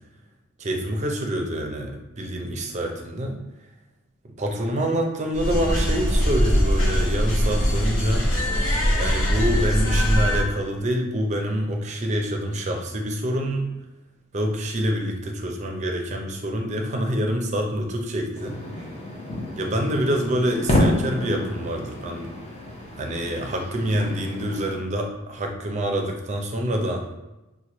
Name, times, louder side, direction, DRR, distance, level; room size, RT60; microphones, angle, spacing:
voice 1, 0.6-3.4 4.4-8.3 9.0-13.7 14.3-18.6 19.6-22.3 23.0-27.1, equal, 30° right, 2 dB, 0.5 m, -26 dB
sound 1, 5.3-10.4, equal, 60° left, 0.8 m, -21 dB
sound 2, 18.3-24.8, left 1 dB, 30° left, 0.6 m, -29 dB
3.0 x 2.2 x 4.1 m, 1.0 s
head